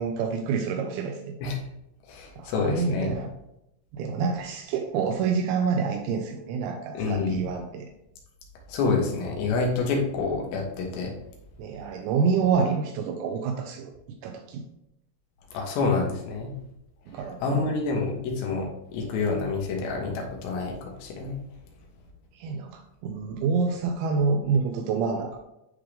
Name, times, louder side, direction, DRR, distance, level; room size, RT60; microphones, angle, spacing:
voice 1, 0.0-1.4 2.4-3.3 3.9-7.9 11.6-13.9 14.2-14.6 17.1-17.7 22.3-25.4, right 5 dB, 85° right, 4 dB, 2.9 m, -27 dB
voice 2, 2.1-3.2 7.0-7.4 8.7-11.1 15.5-16.5 17.4-18.7 18.9-21.4, left 4 dB, 75° left, 0 dB, 3.4 m, -27 dB
10.0 x 3.7 x 3.4 m, 0.85 s
omnidirectional pair, 5.1 m